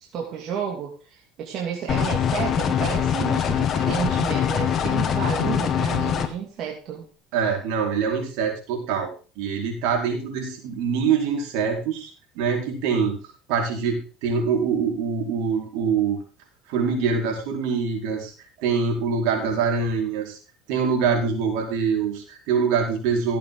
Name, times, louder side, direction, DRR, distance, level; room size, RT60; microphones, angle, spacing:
voice 1, 0.1-7.0, right 8 dB, 50° right, -1 dB, 2.7 m, -31 dB
sound 1, 1.9-6.3, left 8 dB, 40° left, 1.7 m, -23 dB
voice 2, 7.3-9.1 9.4-12.1 12.3-13.2 13.5-16.2 16.7-18.3 18.6-20.4 20.7-23.4, right 6 dB, 75° right, 1 dB, 4.7 m, -24 dB
15.0 x 8.4 x 3.9 m, 0.37 s
supercardioid pair, 110°, 0 cm